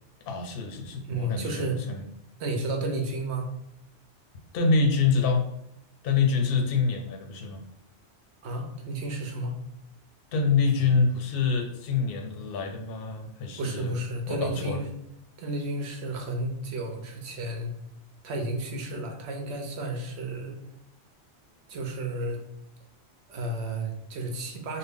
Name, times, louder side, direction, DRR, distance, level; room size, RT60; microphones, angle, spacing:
voice 1, 0.3-2.0 4.5-5.4 6.0-7.6 10.3-13.9 14.3-14.8, left 4 dB, 60° left, 4 dB, 0.7 m, -26 dB
voice 2, 1.1-1.8 2.4-3.5 8.4-9.6 13.6-14.9 15.4-17.7 18.2-20.6 21.7-22.4 23.3-24.8, right 1 dB, 75° right, 3 dB, 0.9 m, -32 dB
3.6 x 2.1 x 3.5 m, 0.77 s
omnidirectional pair, 1.2 m